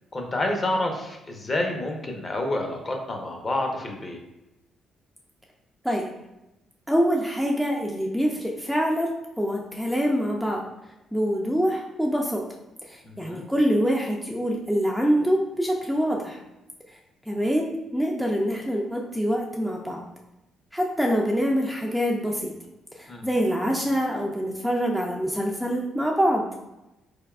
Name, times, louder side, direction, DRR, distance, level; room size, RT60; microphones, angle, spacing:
voice 1, 0.1-4.2 13.0-13.5 23.1-23.2 23.6-23.7, left 1 dB, 30° left, 3 dB, 0.7 m, -29 dB
voice 2, 6.9-9.1 9.4-10.6 11.1-12.4 13.2-16.4 17.3-20.0 20.7-22.5 23.0-26.4, equal, ahead, -1 dB, 0.4 m, -25 dB
3.9 x 3.4 x 2.3 m, 0.95 s
cardioid pair, 90°, 0 cm